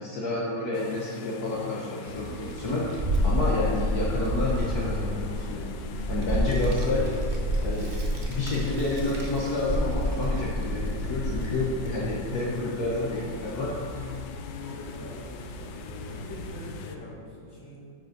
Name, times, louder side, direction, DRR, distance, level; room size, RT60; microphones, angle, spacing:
voice 1, 0.0-2.9 3.2-5.7 6.1-7.1 7.6-7.9 8.3-13.7, left 2 dB, 60° left, -4 dB, 1.4 m, -29 dB
sound 1, 0.7-17.0, left 5 dB, 80° left, 1.3 m, -40 dB
voice 2, 2.1-2.4 6.3-6.5 14.4-17.8, left 1 dB, 15° left, -6 dB, 1.8 m, -44 dB
Child speech kid speaking, 2.1-16.5, equal, 30° right, 1.0 m, -31 dB
8.9 x 5.4 x 6.0 m, 2.4 s
omnidirectional pair, 2.1 m